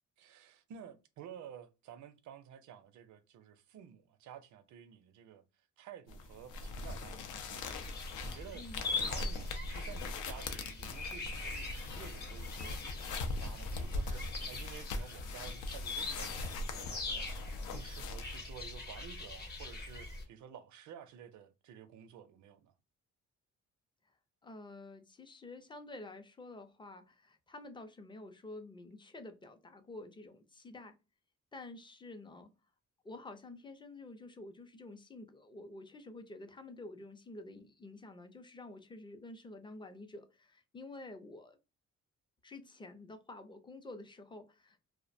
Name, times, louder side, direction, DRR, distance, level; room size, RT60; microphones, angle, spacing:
voice 1, 0.2-5.4 5.8-8.8 9.1-12.8 13.1-22.7, right 9 dB, 70° right, 0.5 m, -52 dB
sound 1, 6.1-18.4, left 2 dB, 85° left, 0.5 m, -41 dB
sound 2, 7.6-20.2, left 3 dB, 35° left, 0.9 m, -42 dB
voice 2, 24.4-31.0 31.5-32.5 33.0-41.6 42.4-44.8, left 2 dB, 15° left, 0.5 m, -49 dB
2.4 x 2.1 x 2.5 m
cardioid pair, 90°, 30 cm